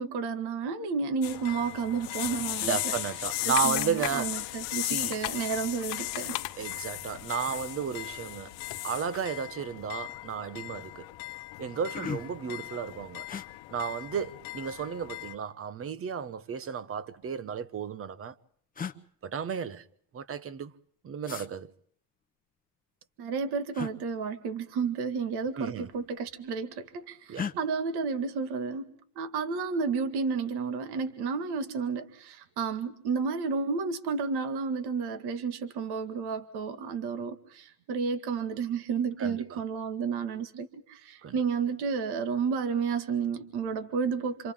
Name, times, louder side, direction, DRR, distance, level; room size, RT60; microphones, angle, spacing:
voice 1, 0.0-2.9 3.4-6.4 23.2-28.9 29.2-44.5, right 5 dB, 60° right, 2.1 m, -31 dB
sound 1, 1.2-15.3, left 20 dB, 90° left, 1.1 m, -36 dB
voice 2, 2.6-4.5 4.8-5.2 6.6-8.5 8.8-11.1 11.6-13.3 13.7-18.3 19.2-19.8 20.1-20.7 21.0-21.7 25.5-25.9 27.3-27.5 39.2-39.6 41.2-41.3, right 7 dB, 30° right, 1.1 m, -33 dB
sound 2, 3.3-8.8, left 17 dB, 75° left, 1.7 m, -41 dB
sound 3, 9.6-9.8 10.2-10.6 11.2-11.3 11.6-12.5 13.3-13.5 14.7-15.4 16.5-17.4 18.3-18.4 18.7-19.0 21.2-21.5 23.7-23.9 25.3-25.5 25.8-26.4 27.3-27.6, left 6 dB, 20° left, 1.0 m, -38 dB
28.5 x 26.5 x 3.7 m
cardioid pair, 140°, 43 cm